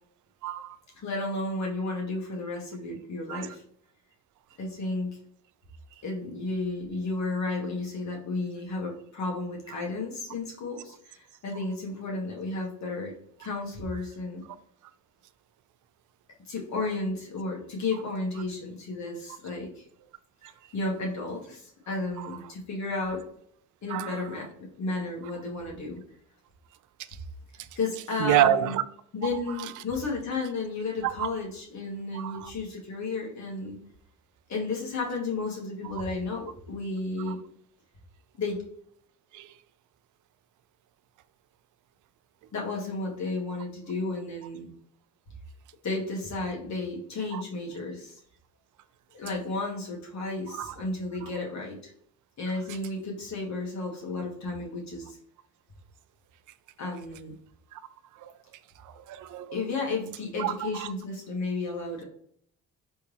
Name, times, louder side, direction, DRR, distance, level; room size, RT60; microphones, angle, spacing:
voice 1, 0.4-0.8 3.3-3.5 20.4-20.5 22.2-22.4 23.9-24.2 28.2-28.8 29.3-29.8 31.0-31.3 32.1-32.5 37.3-37.4 39.3-39.5 47.3-47.4 50.5-50.7 51.2-51.3 57.7-57.8 58.2-58.3 58.8-59.6 60.4-60.9, right 12 dB, 75° right, 0.4 m, -29 dB
voice 2, 1.0-3.6 4.6-5.2 6.0-13.1 13.4-14.4 16.5-19.8 20.7-23.2 23.8-26.0 27.7-28.7 29.1-33.8 34.5-37.4 38.4-38.6 42.5-44.7 45.8-48.2 49.1-51.9 52.4-55.2 56.8-57.3 59.5-62.0, left 3 dB, 65° left, 1.7 m, -33 dB
4.5 x 3.5 x 3.4 m
cardioid pair, 90°, 31 cm